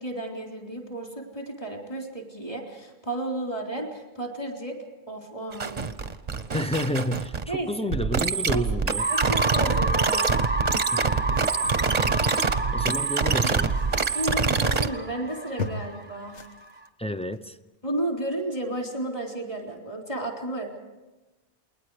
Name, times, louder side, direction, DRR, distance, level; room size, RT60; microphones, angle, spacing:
voice 1, 0.0-4.8 5.1-5.9 7.5-7.7 8.5-8.6 9.1-10.3 14.1-16.4 17.8-20.8, right 1 dB, 30° left, 1 dB, 3.9 m, -32 dB
sound 1, 5.5-7.5 7.9-14.9, right 5 dB, 40° right, 0.9 m, -25 dB
voice 2, 6.5-9.1 10.9-11.1 12.7-13.7 17.0-17.6, left 1 dB, 10° left, 8 dB, 0.3 m, -30 dB
sound 2, 9.0-16.8, right 2 dB, 10° right, 1.1 m, -31 dB
sound 3, 11.3-12.7 13.1-16.0 16.3-16.9 17.2-17.4, left 4 dB, 85° left, 1.6 m, -39 dB
28.5 x 21.0 x 5.0 m, 1.1 s
omnidirectional pair, 1.2 m